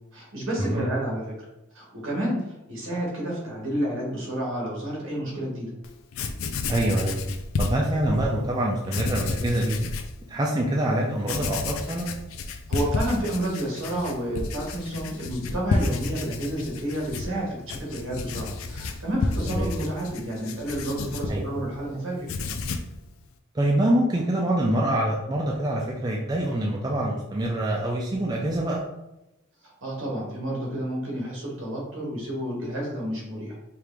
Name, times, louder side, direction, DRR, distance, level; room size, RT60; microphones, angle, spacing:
voice 1, 0.1-1.4 1.7-5.7 12.7-22.3 29.6-33.5, right 1 dB, 65° right, -3 dB, 1.5 m, -30 dB
Writing, 5.8-5.9 6.1-8.3 8.8-10.1 10.6-10.7 11.2-21.9 22.2-23.0, left 3 dB, 75° left, 0.4 m, -31 dB
voice 2, 6.7-7.2 7.6-9.8 10.3-12.1 19.5-19.7 21.3-21.4 23.5-28.8, right 1 dB, 20° right, -2 dB, 0.4 m, -25 dB
4.6 x 2.5 x 3.4 m, 0.93 s
head